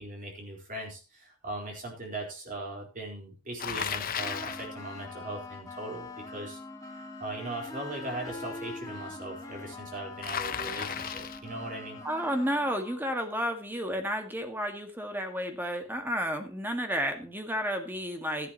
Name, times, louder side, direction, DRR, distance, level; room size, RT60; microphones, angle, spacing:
voice 1, 0.0-6.6 6.9-12.0, right 2 dB, 40° right, 0 dB, 4.2 m, -39 dB
Bicycle, 3.6-4.7 10.2-11.5, left 8 dB, 45° left, 0.8 m, -34 dB
sound 1, 4.2-13.0, left 3 dB, 15° left, 2.0 m, -43 dB
voice 2, 12.0-18.5, equal, 10° right, 5 dB, 1.8 m, -31 dB
13.5 x 11.0 x 3.0 m, 0.32 s
head